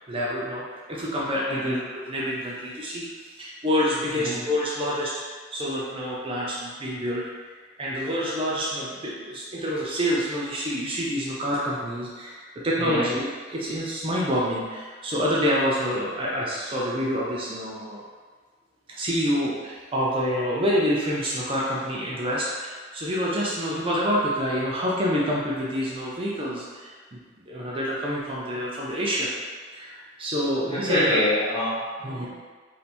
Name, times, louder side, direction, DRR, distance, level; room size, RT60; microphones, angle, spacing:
voice 1, 0.1-0.6 0.9-3.1 3.3-5.1 5.5-7.2 7.8-13.3 13.5-18.0 18.9-29.3 29.7-31.2 32.0-32.3, equal, 30° right, -5 dB, 0.5 m, -27 dB
voice 2, 30.7-32.3, left 1 dB, 20° left, -9 dB, 1.1 m, -26 dB
3.3 x 2.7 x 4.2 m, 1.5 s
head